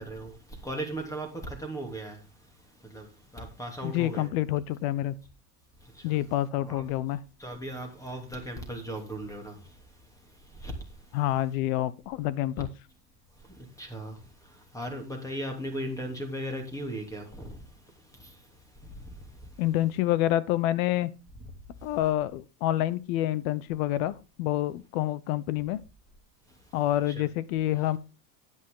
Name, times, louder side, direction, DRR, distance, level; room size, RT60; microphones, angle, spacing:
voice 1, 0.0-4.3 5.8-6.2 6.6-6.8 7.4-11.2 13.3-19.6 21.8-22.0 26.5-26.8 27.1-27.3, right 1 dB, 5° left, 3.0 m, -39 dB
voice 2, 3.8-5.1 6.0-7.2 11.1-12.7 19.6-21.1 21.8-25.8 26.7-28.0, left 14 dB, 65° left, 1.1 m, -27 dB
10.5 x 9.5 x 3.9 m
supercardioid pair, 140°, 45 cm